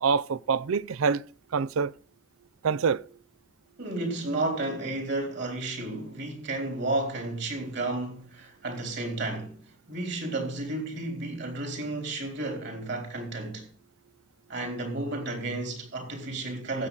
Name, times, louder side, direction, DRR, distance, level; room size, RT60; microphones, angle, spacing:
voice 1, 0.0-1.2 1.5-1.9 2.6-3.1, right 5 dB, 75° right, 0.4 m, -25 dB
voice 2, 3.8-9.6 9.9-13.7 14.5-16.9, right 2 dB, 50° right, 3.7 m, -32 dB
16.0 x 7.6 x 3.9 m
head